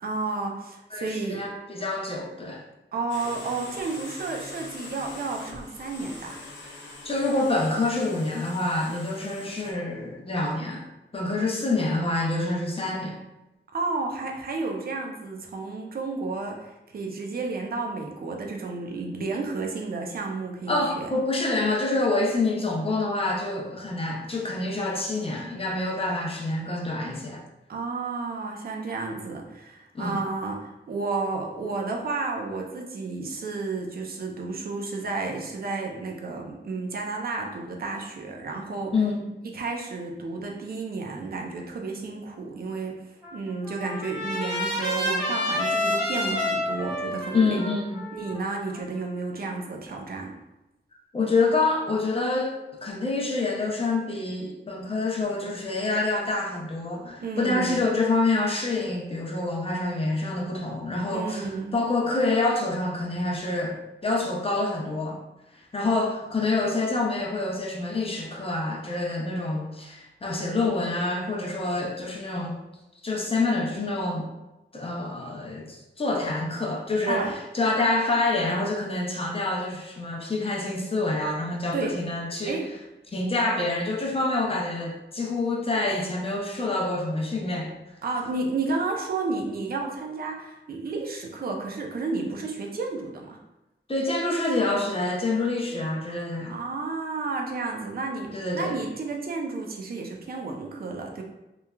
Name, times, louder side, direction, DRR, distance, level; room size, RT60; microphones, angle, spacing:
voice 1, 0.0-1.5 2.9-6.4 13.7-21.1 27.7-38.9 39.5-43.0 43.3-47.6 48.1-50.3 57.2-57.8 60.9-61.7 77.1-77.3 81.7-82.0 82.4-82.7 88.0-93.4 96.5-101.2, right 3 dB, 55° right, 1 dB, 0.4 m, -32 dB
voice 2, 0.9-2.6 7.0-10.8 11.1-13.2 20.7-27.4 29.9-30.2 38.9-39.3 47.3-48.0 51.1-65.2 65.7-72.6 73.0-74.3 74.7-82.6 83.1-87.7 93.9-96.6 98.3-98.7, left 2 dB, 30° left, -1 dB, 0.5 m, -27 dB
sound 1, 3.1-9.7, left 2 dB, 80° left, 0.5 m, -43 dB
Trumpet, 43.2-49.4, left 1 dB, 5° left, 1.1 m, -29 dB
3.0 x 2.3 x 2.2 m, 0.96 s
wide cardioid pair, 125°, 19 cm